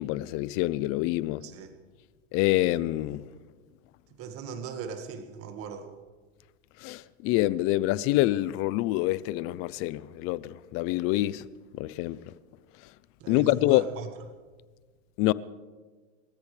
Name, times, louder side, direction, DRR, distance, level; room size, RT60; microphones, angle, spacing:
voice 1, 0.0-1.4 2.3-3.2 6.8-11.5 11.7-12.3 13.3-13.8 15.2-15.3, left 17 dB, 40° left, 0.6 m, -26 dB
voice 2, 1.4-1.8 4.1-5.9 13.2-14.1, right 6 dB, 40° right, 1.8 m, -39 dB
29.0 x 14.0 x 3.3 m
supercardioid pair, 135°, 36 cm